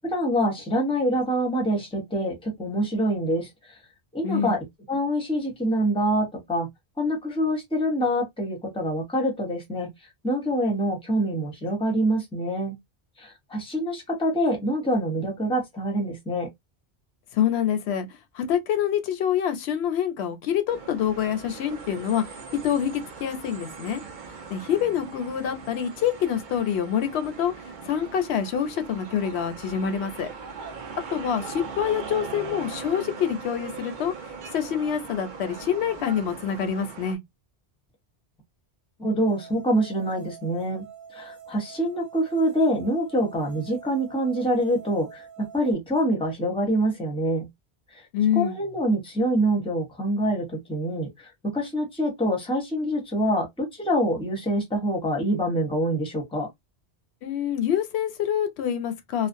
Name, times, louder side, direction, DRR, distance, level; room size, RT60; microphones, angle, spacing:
voice 1, 0.0-3.8 4.1-4.6 4.9-6.7 7.0-9.9 10.2-12.7 13.2-16.5 39.0-40.8 41.1-45.3 45.5-47.5 47.9-48.0 48.3-56.5, equal, 5° left, 0.7 m, -25 dB
voice 2, 4.2-4.6 17.3-18.1 18.3-22.2 22.6-24.0 24.5-27.5 27.8-30.3 31.1-34.1 34.5-37.2 48.1-48.6 57.2-59.3, left 9 dB, 85° left, 0.8 m, -26 dB
sound 1, 20.7-37.1, right 5 dB, 55° right, 0.7 m, -40 dB
sound 2, 39.2-45.7, right 7 dB, 80° right, 1.0 m, -45 dB
2.5 x 2.0 x 2.5 m
omnidirectional pair, 1.1 m